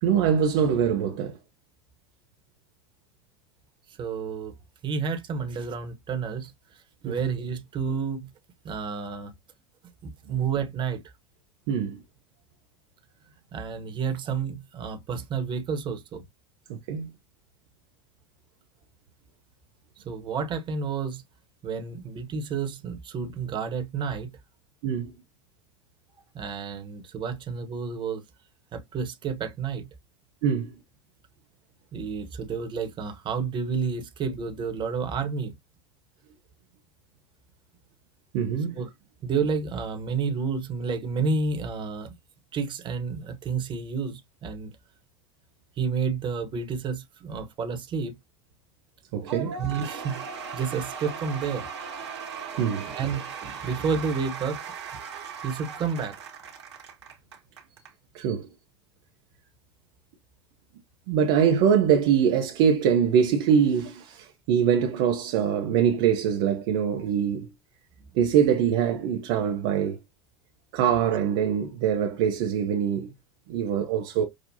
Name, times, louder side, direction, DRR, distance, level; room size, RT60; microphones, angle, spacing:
voice 1, 0.0-1.4 7.0-7.2 10.3-10.4 11.7-12.0 16.7-17.1 24.8-25.1 30.4-30.7 38.3-38.8 49.1-49.6 52.6-52.9 58.1-58.5 61.1-67.5 68.1-70.0 70.7-73.1 73.5-74.2, right 8 dB, 55° right, 0.9 m, -23 dB
voice 2, 3.9-4.5 4.8-6.5 7.0-8.3 8.6-9.3 10.0-11.0 13.5-16.2 20.0-21.2 21.6-24.3 26.3-28.2 28.7-29.9 31.9-35.5 38.8-38.9 39.2-42.1 42.5-44.7 45.8-48.2 49.5-50.3 50.5-51.7 52.8-54.6 55.4-56.2, right 5 dB, 35° right, 1.2 m, -30 dB
Cheering / Applause / Crowd, 49.3-57.9, right 6 dB, 75° right, 1.6 m, -38 dB
6.3 x 2.4 x 2.7 m
figure-of-eight pair, 80°, 14 cm